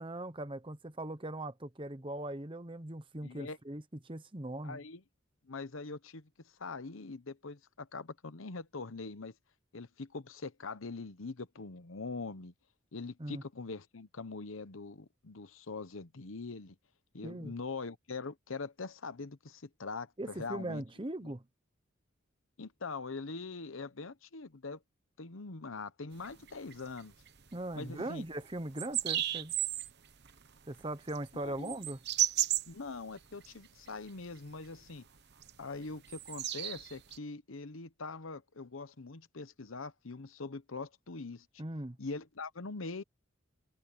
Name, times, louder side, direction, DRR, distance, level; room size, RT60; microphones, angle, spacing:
voice 1, 0.0-4.8 13.2-13.4 17.2-17.5 20.2-21.4 27.5-29.5 30.7-32.0 41.6-42.0, right 1 dB, 25° right, 1.0 m, -40 dB
voice 2, 3.2-3.6 4.6-5.0 5.4-6.3 6.6-9.3 9.7-12.5 12.9-16.7 17.1-20.8 21.2-21.3 22.6-24.8 25.2-27.1 27.8-28.2 31.3-31.7 32.7-35.0 35.6-41.5 42.0-43.0, left 3 dB, 80° left, 1.0 m, -43 dB
sound 1, 26.1-27.5 27.7-27.9 28.2-28.3 28.7-29.9 30.2-33.5 33.9-34.4 34.6-34.9 35.3-37.2, right 12 dB, 55° right, 1.1 m, -34 dB
head